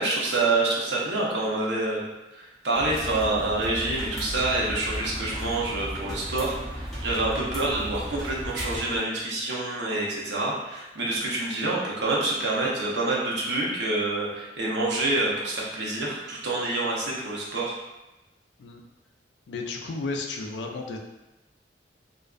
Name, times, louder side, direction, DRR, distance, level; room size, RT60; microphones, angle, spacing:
voice 1, 0.0-2.0 2.3-17.8, right 2 dB, 70° right, -4 dB, 0.6 m, -27 dB
sound 1, 2.7-9.0, equal, ahead, 0.6 m, -35 dB
voice 2, 19.5-21.0, left 3 dB, 70° left, 1 dB, 0.3 m, -33 dB
2.5 x 2.2 x 2.3 m, 1.0 s
head